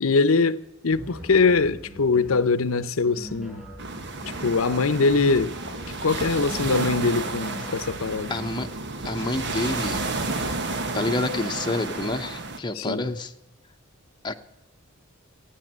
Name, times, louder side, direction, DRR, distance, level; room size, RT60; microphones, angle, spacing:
voice 1, 0.0-3.6 4.4-5.5 6.0-8.3 12.8-13.0, left 4 dB, 85° left, 0.8 m, -22 dB
sound 1, 0.9-2.5 3.0-4.6 5.1-6.7 7.2-8.8, equal, 5° right, 6.4 m, -41 dB
sound 2, 3.8-12.6, right 3 dB, 60° right, 1.3 m, -31 dB
voice 2, 8.3-8.7 9.0-10.0 10.7-13.3 14.2-14.4, left 2 dB, 20° left, 0.9 m, -28 dB
15.0 x 10.0 x 7.4 m
head